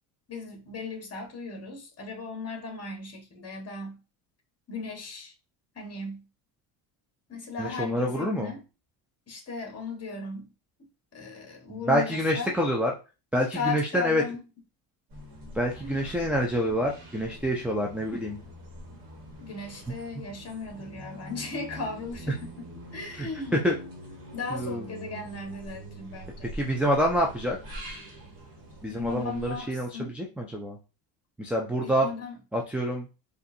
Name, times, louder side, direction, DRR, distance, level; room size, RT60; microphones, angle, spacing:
voice 1, 0.3-4.0 4.7-5.3 5.7-6.3 7.3-8.6 9.3-10.5 10.8-12.5 13.5-14.4 15.8-15.9 19.4-22.7 22.9-23.6 24.3-26.5 28.9-30.1 31.8-32.3, left 4 dB, 30° left, 1.4 m, -37 dB
voice 2, 7.6-8.5 11.7-12.9 13.3-14.2 15.5-18.4 23.2-23.8 24.5-24.9 26.4-27.6 28.8-30.8 31.4-32.1 32.5-33.1, equal, 5° right, 0.4 m, -27 dB
sound 1, 15.1-29.6, right 1 dB, 40° right, 1.4 m, -44 dB
4.9 x 2.6 x 2.7 m
cardioid pair, 105°, 50 cm